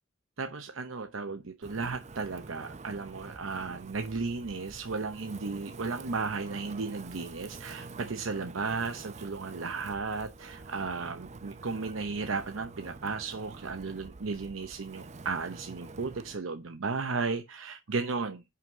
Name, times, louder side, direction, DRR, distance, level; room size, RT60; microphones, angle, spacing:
voice 1, 0.4-18.4, right 4 dB, 85° right, 0.8 m, -35 dB
Wind, 1.6-16.4, right 3 dB, 35° right, 0.5 m, -47 dB
5.7 x 5.4 x 6.0 m
head